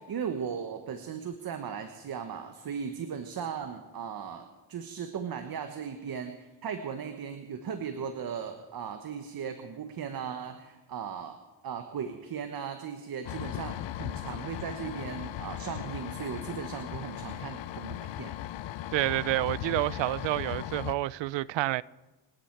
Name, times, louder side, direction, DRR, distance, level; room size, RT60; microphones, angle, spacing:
voice 1, 0.0-11.4 11.6-18.3, right 7 dB, 50° right, 1.4 m, -37 dB
sound 1, 13.2-20.9, left 13 dB, 70° left, 0.8 m, -38 dB
voice 2, 18.9-21.8, right 17 dB, 70° right, 0.6 m, -29 dB
27.5 x 10.5 x 4.7 m
cardioid pair, 110°, 46 cm